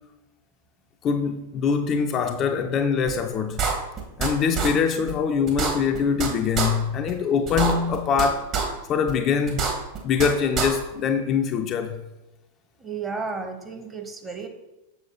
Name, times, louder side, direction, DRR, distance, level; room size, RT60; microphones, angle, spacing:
voice 1, 1.0-3.6 4.2-8.5 8.9-9.6 10.0-12.0, left 6 dB, 30° left, 0.4 m, -23 dB
sound 1, 3.1-3.2 3.6-4.3 4.6-4.7 5.1-5.2 5.5-6.3 6.6-6.7 7.1-7.2 7.5-8.3 8.5-8.6 9.1-9.2 9.5-10.3 10.6-10.7, right 6 dB, 35° right, 1.3 m, -25 dB
voice 2, 12.8-14.5, right 4 dB, 15° right, 0.9 m, -33 dB
6.9 x 6.2 x 2.9 m
figure-of-eight pair, 90°, 0 cm